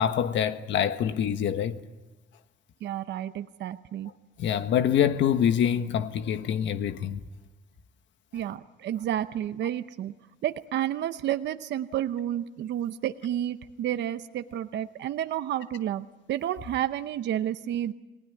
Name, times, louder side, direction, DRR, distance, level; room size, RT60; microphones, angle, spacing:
voice 1, 0.0-1.8 4.4-7.2, left 9 dB, 80° left, 1.5 m, -25 dB
voice 2, 2.8-4.1 8.3-10.1 10.4-17.9, right 11 dB, 70° right, 0.8 m, -31 dB
30.0 x 20.0 x 9.8 m
cardioid pair, 180°, 19 cm